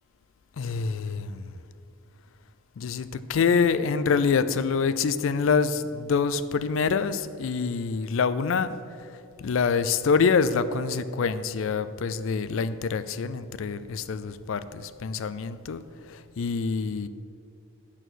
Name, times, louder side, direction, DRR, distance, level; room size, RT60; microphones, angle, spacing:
voice 1, 0.6-1.5 2.8-8.7 9.4-15.8 16.1-17.1, left 5 dB, 60° left, 13 dB, 0.4 m, -26 dB
8.9 x 4.4 x 6.2 m, 2.4 s
head